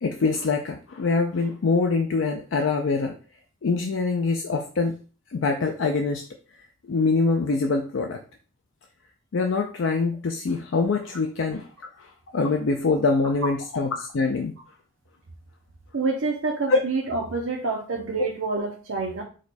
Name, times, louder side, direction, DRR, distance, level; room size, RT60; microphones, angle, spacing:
voice 1, 0.0-3.2 3.6-5.0 5.3-6.2 6.9-8.2 9.3-11.7 12.0-14.5 16.7-16.8, left 4 dB, 75° left, 3 dB, 0.4 m, -24 dB
voice 2, 15.9-19.2, right 3 dB, 90° right, 0 dB, 0.7 m, -27 dB
4.9 x 2.2 x 4.1 m, 0.37 s
head